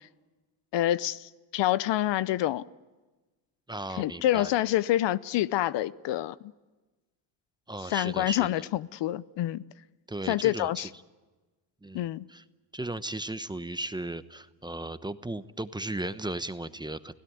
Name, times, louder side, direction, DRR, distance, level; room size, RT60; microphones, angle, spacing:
voice 1, 0.7-2.6 4.0-6.3 7.9-9.6 10.3-10.9 11.9-12.2, left 14 dB, 60° left, 0.8 m, -27 dB
voice 2, 3.7-4.5 7.7-8.7 10.1-10.9 11.8-12.4 12.7-17.1, right 2 dB, 10° right, 0.9 m, -36 dB
29.5 x 17.0 x 9.4 m
supercardioid pair, 80°, 48 cm